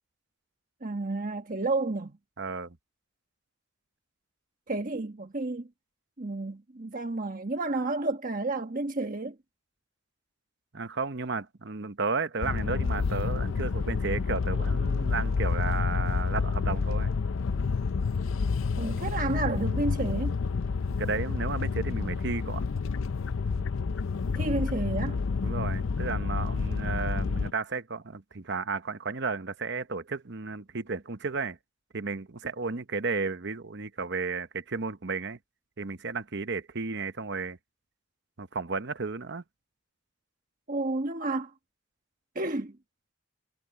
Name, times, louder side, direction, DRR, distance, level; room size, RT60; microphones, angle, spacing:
voice 1, 0.8-2.2 4.7-5.7 6.2-9.4 18.8-20.4 24.3-25.2 40.7-41.5 42.3-42.8, right 2 dB, 40° right, 1.3 m, -31 dB
voice 2, 2.4-2.8 10.7-17.1 21.0-22.6 25.4-31.6 31.9-35.4 35.8-37.6 38.4-39.4, right 4 dB, 55° right, 1.0 m, -33 dB
sound 1, 12.4-27.5, left 4 dB, 70° left, 0.5 m, -29 dB
head